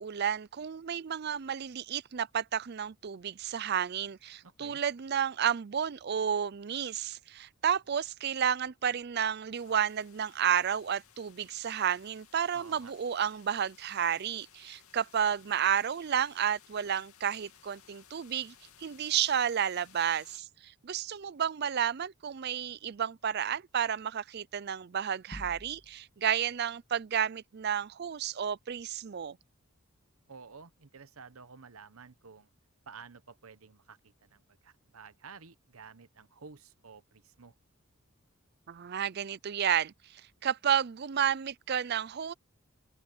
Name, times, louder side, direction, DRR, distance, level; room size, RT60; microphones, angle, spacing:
voice 1, 0.0-29.4 38.7-42.3, right 8 dB, 50° right, 0.4 m, -31 dB
voice 2, 4.4-4.8 12.5-12.9 30.3-32.5 32.9-37.5, right 5 dB, 75° right, 1.0 m, -52 dB
sound 1, 9.5-20.4, left 9 dB, 85° left, 2.7 m, -60 dB
sound 2, 25.3-26.3, equal, 20° left, 1.9 m, -47 dB
head